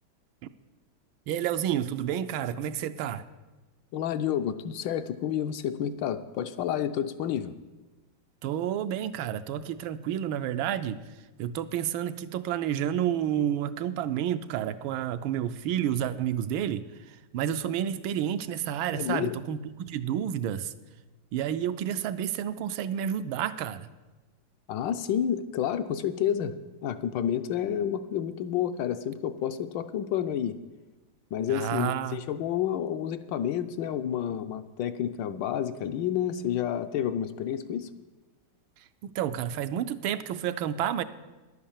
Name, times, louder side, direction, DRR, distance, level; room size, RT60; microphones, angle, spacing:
voice 1, 1.3-3.2 8.4-11.0 11.4-20.7 21.3-23.9 31.5-32.2 39.0-41.0, right 10 dB, 80° right, 11 dB, 1.4 m, -30 dB
voice 2, 3.9-7.5 18.9-19.4 24.7-26.5 26.8-30.6 31.3-37.9, left 9 dB, 75° left, 9 dB, 1.2 m, -30 dB
10.5 x 8.7 x 7.2 m, 1.2 s
omnidirectional pair, 2.2 m